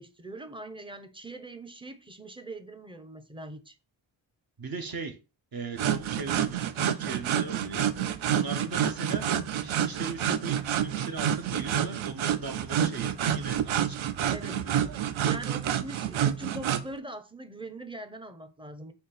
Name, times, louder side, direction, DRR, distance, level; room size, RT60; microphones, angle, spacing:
voice 1, 0.0-3.8 14.3-14.7 15.0-18.9, right 2 dB, 10° right, 0.6 m, -42 dB
voice 2, 4.6-5.2 5.5-7.9 8.3-9.3 9.6-14.8, right 3 dB, 50° right, 0.9 m, -38 dB
sound 1, 5.8-16.8, right 9 dB, 80° right, 0.6 m, -28 dB
4.2 x 2.9 x 4.0 m
cardioid pair, 75°, 48 cm